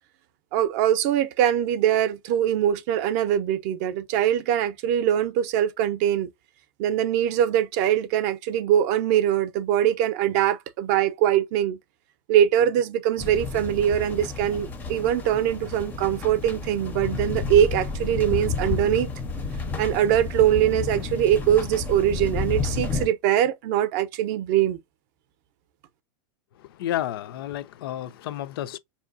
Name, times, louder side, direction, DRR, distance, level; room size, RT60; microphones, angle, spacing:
voice 1, 0.5-6.3 6.8-11.8 12.3-19.1 19.8-24.8, right 11 dB, 45° right, 0.5 m, -22 dB
sound 1, 13.2-23.1, left 4 dB, 15° left, 0.5 m, -31 dB
voice 2, 26.6-28.8, left 12 dB, 70° left, 0.4 m, -31 dB
4.6 x 2.8 x 2.4 m
supercardioid pair, 155°, 13 cm